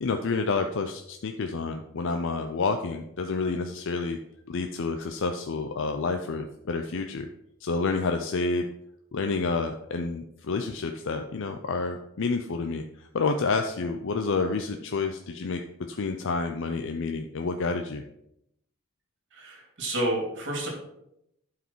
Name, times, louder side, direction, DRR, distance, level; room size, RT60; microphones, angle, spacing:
voice 1, 0.0-4.2 4.5-7.3 7.6-8.7 9.1-15.6 15.9-18.0, left 4 dB, 65° left, 5 dB, 0.5 m, -29 dB
voice 2, 19.3-20.7, right 1 dB, 60° right, 0 dB, 2.7 m, -30 dB
11.0 x 4.9 x 4.6 m, 0.79 s
head